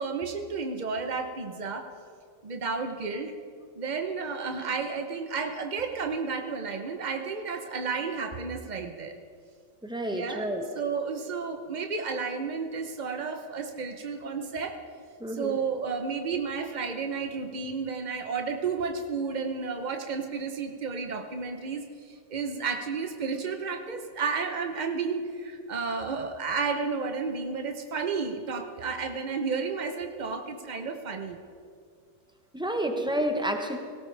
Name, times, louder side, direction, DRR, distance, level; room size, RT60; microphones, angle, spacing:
voice 1, 0.0-1.9 2.4-3.3 3.7-9.1 10.1-14.8 15.3-31.4 32.8-33.0, right 5 dB, 65° right, 5 dB, 0.4 m, -32 dB
voice 2, 9.8-10.6 15.2-15.5 32.5-33.8, right 1 dB, 5° right, 4 dB, 0.4 m, -29 dB
18.0 x 17.0 x 3.3 m, 2.2 s
omnidirectional pair, 2.0 m